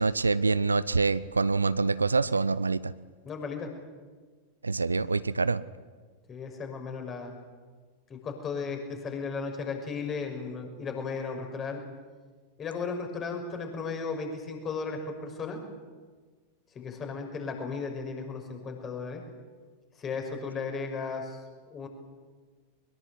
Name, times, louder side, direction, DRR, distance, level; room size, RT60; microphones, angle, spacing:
voice 1, 0.0-2.9 4.6-5.6, right 4 dB, 80° right, 18 dB, 0.7 m, -26 dB
voice 2, 3.2-3.7 6.3-7.3 8.1-11.8 12.6-15.6 16.7-19.2 20.0-21.4 21.7-21.9, left 4 dB, 25° left, 3 dB, 6.4 m, -35 dB
23.5 x 21.5 x 9.6 m, 1.4 s
figure-of-eight pair, 90°, 0 cm